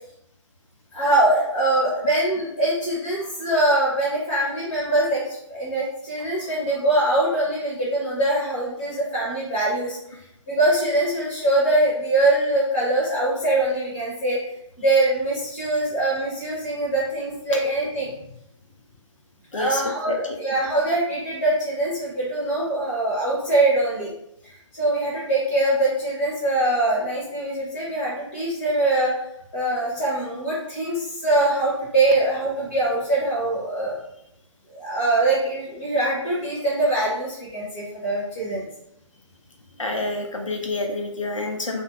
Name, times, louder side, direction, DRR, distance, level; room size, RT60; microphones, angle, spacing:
voice 1, 0.9-10.0 10.5-14.4 14.8-18.1 19.5-24.1 24.7-29.1 29.5-33.9 34.7-38.7, right 2 dB, 20° left, -7 dB, 0.6 m, -23 dB
voice 2, 19.5-20.4 39.8-41.8, left 2 dB, 85° left, 2 dB, 0.4 m, -28 dB
2.6 x 2.1 x 2.3 m, 0.78 s
figure-of-eight pair, 145°, 16 cm